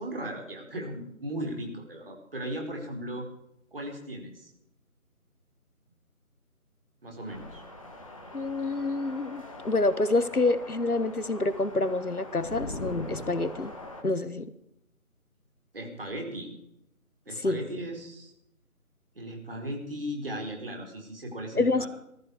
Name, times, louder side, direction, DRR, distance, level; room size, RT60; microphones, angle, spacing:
voice 1, 0.0-3.3 3.7-4.5 7.0-7.6 15.7-16.5 17.3-18.3 19.1-21.9, right 1 dB, 40° right, 1 dB, 4.5 m, -37 dB
sound 1, 7.3-14.0, left 1 dB, 25° left, 1.7 m, -45 dB
voice 2, 8.3-13.7 14.0-14.5 17.4-17.6 21.6-21.9, left 2 dB, 80° left, 14 dB, 1.4 m, -27 dB
sound 2, 12.4-14.0, left 1 dB, 45° left, 7.3 m, -39 dB
19.5 x 14.5 x 4.8 m, 0.80 s
figure-of-eight pair, 160°, 43 cm